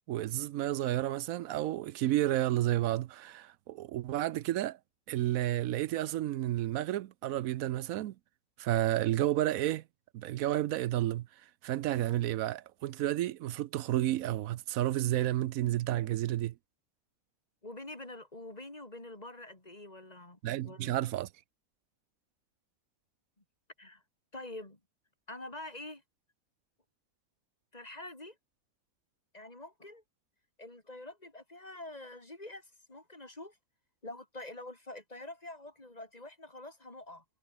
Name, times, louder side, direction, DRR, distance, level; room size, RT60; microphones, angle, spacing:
voice 1, 0.1-4.8 5.1-8.1 8.6-9.8 10.1-11.3 11.6-16.5 20.4-21.3, right 14 dB, 75° right, 1.0 m, -31 dB
voice 2, 17.6-21.0 23.8-24.0 24.3-24.8 25.3-26.0 27.7-28.4 29.3-30.0 30.6-33.6 34.0-37.2, left 2 dB, 25° left, 3.4 m, -46 dB
omnidirectional pair, 1.5 m